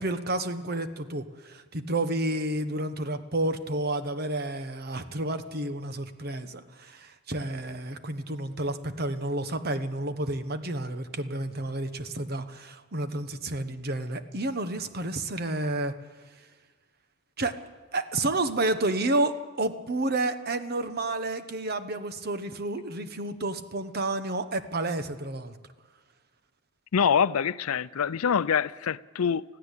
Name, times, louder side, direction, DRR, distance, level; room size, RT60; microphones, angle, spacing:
voice 1, 0.0-15.9 17.4-17.5 17.9-25.5, right 2 dB, 45° right, 1.2 m, -30 dB
voice 2, 26.9-29.4, left 7 dB, 85° left, 0.5 m, -25 dB
21.0 x 15.0 x 8.3 m
head